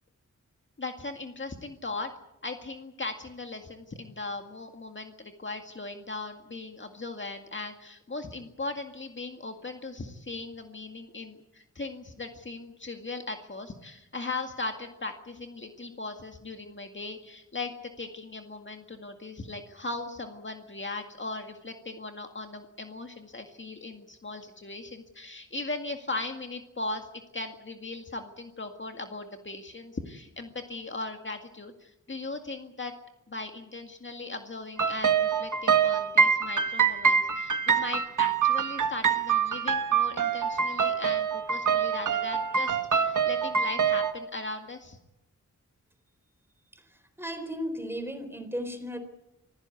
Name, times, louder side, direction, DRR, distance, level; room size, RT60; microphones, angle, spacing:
voice 1, 0.8-2.1 2.4-27.1 27.3-33.0 33.3-45.0, left 3 dB, 40° left, 5 dB, 2.0 m, -38 dB
sound 1, 34.8-44.1, right 6 dB, 85° right, 1.4 m, -25 dB
voice 2, 47.2-49.0, equal, 10° right, 8 dB, 4.0 m, -35 dB
26.5 x 16.0 x 8.5 m, 0.90 s
wide cardioid pair, 115°, 30 cm